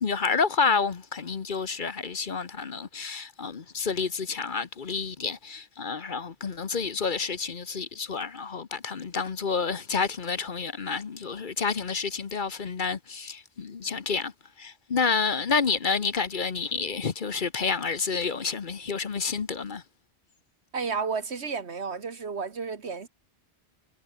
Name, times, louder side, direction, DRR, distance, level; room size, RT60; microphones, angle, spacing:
voice 1, 0.0-14.3 14.6-19.8, left 5 dB, 50° left, 1.1 m, -29 dB
voice 2, 20.7-23.1, right 5 dB, 75° right, 1.9 m, -32 dB
omnidirectional pair, 1.1 m